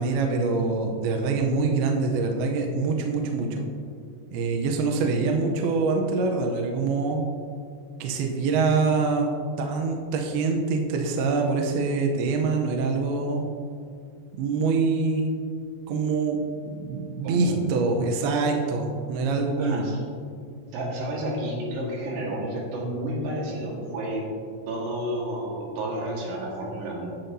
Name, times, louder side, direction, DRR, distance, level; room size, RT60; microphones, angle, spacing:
voice 1, 0.0-3.6 4.3-7.2 8.0-9.3 9.6-13.5 14.3-15.4 15.9-19.9, right 4 dB, 85° right, 2 dB, 2.2 m, -25 dB
voice 2, 17.2-17.6 19.6-20.0 20.7-24.3 24.7-27.1, right 1 dB, 70° right, -3 dB, 3.5 m, -31 dB
10.5 x 7.7 x 2.7 m, 2.3 s
omnidirectional pair, 5.3 m